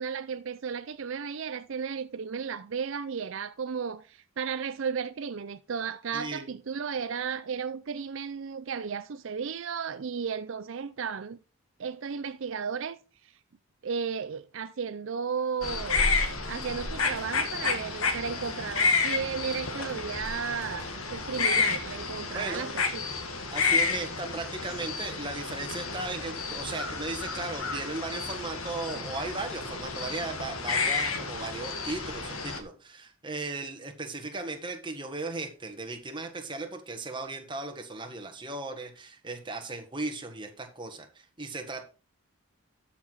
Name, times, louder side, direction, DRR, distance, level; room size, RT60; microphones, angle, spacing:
voice 1, 0.0-11.4 11.8-13.3 13.8-16.0 16.5-23.0, right 6 dB, 65° right, 0.5 m, -34 dB
voice 2, 6.1-6.5 22.3-22.7 23.5-41.8, right 3 dB, 20° right, 1.6 m, -37 dB
sound 1, 15.6-32.6, left 4 dB, 80° left, 1.8 m, -30 dB
sound 2, 16.3-22.1, equal, 20° left, 2.7 m, -49 dB
13.0 x 5.9 x 4.6 m
head